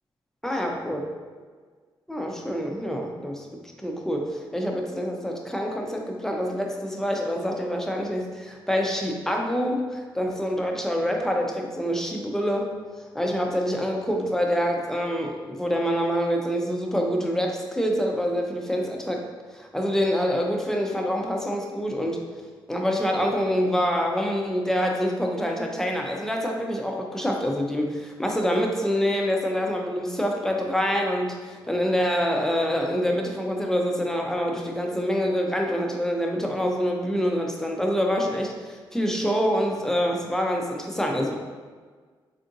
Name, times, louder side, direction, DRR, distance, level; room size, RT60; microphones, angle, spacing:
voice 1, 0.4-1.0 2.1-3.5 3.8-12.7 13.1-19.2 19.5-22.2 22.7-41.4, equal, 5° left, 1 dB, 0.5 m, -26 dB
3.5 x 2.5 x 2.6 m, 1.5 s
supercardioid pair, 50°, 10 cm